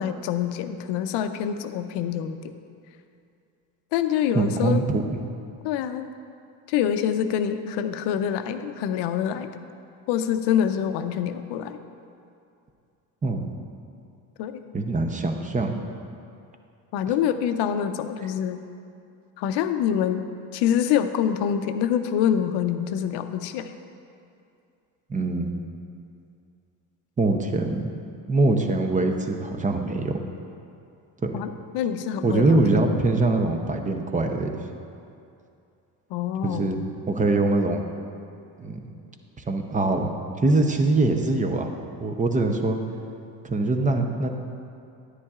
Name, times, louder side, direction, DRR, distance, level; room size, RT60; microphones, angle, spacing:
voice 1, 0.0-2.5 3.9-4.8 5.6-6.1 6.7-9.5 10.1-11.8 14.4-14.6 16.9-18.6 19.4-20.2 20.5-23.7 31.3-33.0 36.1-36.8, left 9 dB, 75° left, 9 dB, 0.6 m, -26 dB
voice 2, 4.3-5.2 13.2-13.6 14.7-15.7 25.1-25.5 27.2-27.9 28.3-30.1 31.2-31.4 32.2-34.6 36.4-36.8 37.1-37.8 38.6-38.8 39.5-40.1 40.4-42.8 43.4-44.3, right 2 dB, 20° right, 4 dB, 0.6 m, -23 dB
10.0 x 9.7 x 2.4 m, 2.5 s
cardioid pair, 105°, 42 cm